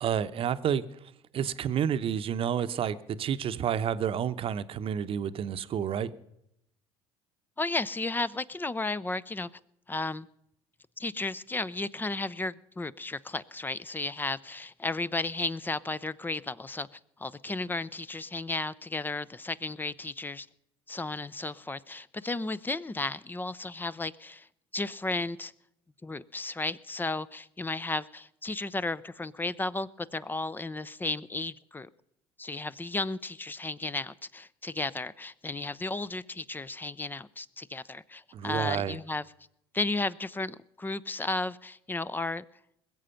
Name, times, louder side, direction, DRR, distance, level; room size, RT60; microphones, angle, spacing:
voice 1, 0.0-1.0 1.3-6.1 38.3-39.0, right 8 dB, 45° right, 13 dB, 0.8 m, -30 dB
voice 2, 7.6-9.5 9.9-10.3 11.0-20.5 20.9-24.5 24.7-25.5 26.0-31.9 32.4-39.2 39.7-42.4, left 2 dB, 15° left, 19 dB, 0.6 m, -34 dB
21.0 x 7.8 x 5.7 m, 0.79 s
hypercardioid pair, 70°, 13 cm